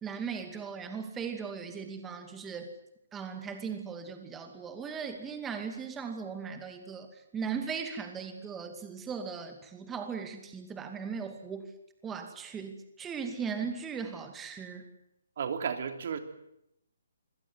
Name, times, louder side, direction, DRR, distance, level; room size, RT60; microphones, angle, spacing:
voice 1, 0.0-2.7 3.1-11.7 12.0-14.9, right 6 dB, 10° right, 6 dB, 2.3 m, -38 dB
voice 2, 15.4-16.2, right 7 dB, 55° right, 8 dB, 3.4 m, -33 dB
26.5 x 17.0 x 9.7 m, 0.79 s
hypercardioid pair, 155°, 0 cm